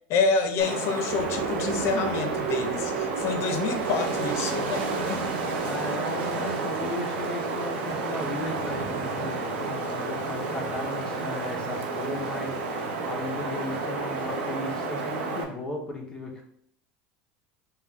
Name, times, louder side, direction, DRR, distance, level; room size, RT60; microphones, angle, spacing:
voice 1, 0.1-5.2, left 4 dB, 55° left, 7 dB, 0.7 m, -28 dB
Wind, 0.6-15.4, right 3 dB, 90° right, 0.8 m, -31 dB
sound 1, 1.1-7.6, right 8 dB, 35° right, 0.6 m, -35 dB
voice 2, 5.6-16.5, left 1 dB, 10° left, -1 dB, 1.1 m, -36 dB
5.5 x 2.2 x 3.6 m, 0.64 s
supercardioid pair, 105°, 6 cm